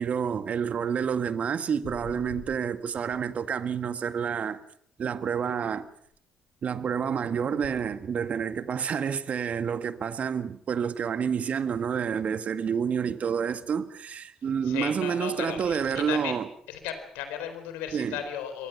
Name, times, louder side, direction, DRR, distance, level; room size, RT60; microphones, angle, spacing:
voice 1, 0.0-4.6 5.0-5.9 6.6-16.5 17.9-18.2, right 7 dB, 50° right, 1.8 m, -29 dB
voice 2, 14.6-16.4 16.7-18.7, left 9 dB, 70° left, 4.1 m, -35 dB
28.0 x 23.5 x 5.9 m
figure-of-eight pair, 45°, 3 cm